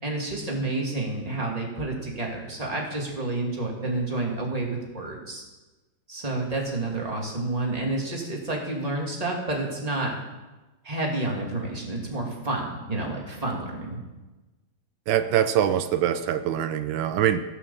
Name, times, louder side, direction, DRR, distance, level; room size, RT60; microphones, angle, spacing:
voice 1, 0.0-5.4 6.1-10.1 10.8-14.0, right 2 dB, 20° right, -1 dB, 2.3 m, -29 dB
voice 2, 15.1-17.4, right 10 dB, 90° right, 11 dB, 1.5 m, -23 dB
16.0 x 6.2 x 6.9 m, 1.1 s
omnidirectional pair, 2.1 m